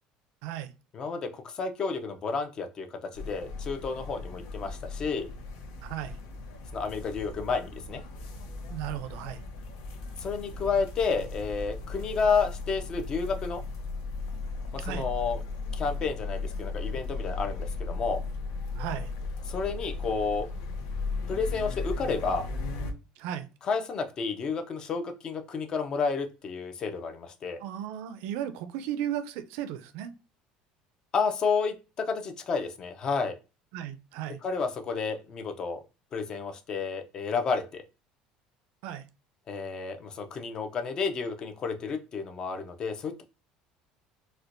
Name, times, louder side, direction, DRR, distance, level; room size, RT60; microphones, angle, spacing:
voice 1, 0.9-5.3 6.7-8.0 10.2-13.6 14.7-15.4 15.7-18.2 19.5-20.5 21.3-22.5 23.6-27.6 31.1-33.4 34.4-35.8 36.1-37.8 39.5-43.2, left 5 dB, 30° left, 0.4 m, -31 dB
sound 1, 3.1-22.9, left 3 dB, 85° left, 0.6 m, -36 dB
voice 2, 5.8-6.2 8.7-9.4 14.8-15.1 18.8-19.1 23.2-23.5 27.6-30.1 33.7-34.4 38.8-39.0, right 11 dB, 75° right, 0.4 m, -35 dB
4.3 x 2.1 x 2.5 m
cardioid pair, 160°, 3 cm